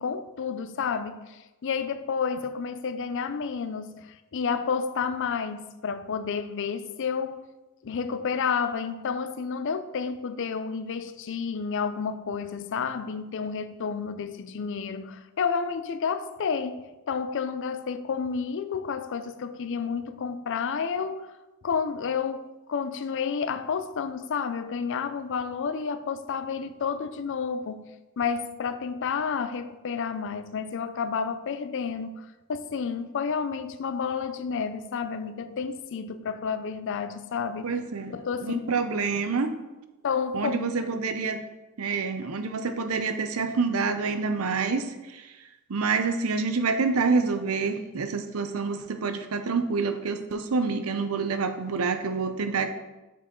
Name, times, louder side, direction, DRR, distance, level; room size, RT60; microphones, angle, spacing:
voice 1, 0.0-7.5 7.8-21.3 21.6-37.8 38.1-38.9 40.0-40.6, left 6 dB, 60° left, 0.4 m, -30 dB
voice 2, 37.6-38.1 38.4-39.5 40.3-41.4 41.8-44.8 45.7-52.7, right 4 dB, 75° right, 0.6 m, -27 dB
6.9 x 5.2 x 3.8 m
head